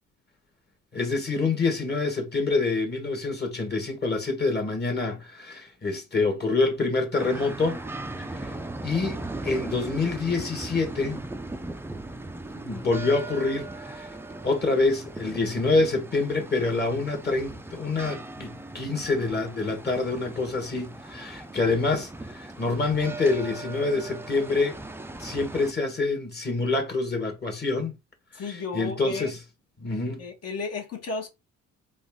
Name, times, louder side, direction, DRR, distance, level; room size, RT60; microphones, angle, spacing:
voice 1, 0.9-7.8 8.3-8.5 8.8-11.2 12.6-14.1 14.4-24.8 25.2-27.9 28.7-29.4 29.8-30.2, left 3 dB, 35° left, 1.5 m, -26 dB
sound 1, 7.1-25.7, right 2 dB, 10° right, 0.4 m, -38 dB
voice 2, 28.3-29.3 30.2-31.3, left 4 dB, 55° left, 1.6 m, -33 dB
4.0 x 2.6 x 3.6 m
cardioid pair, 90°, 30 cm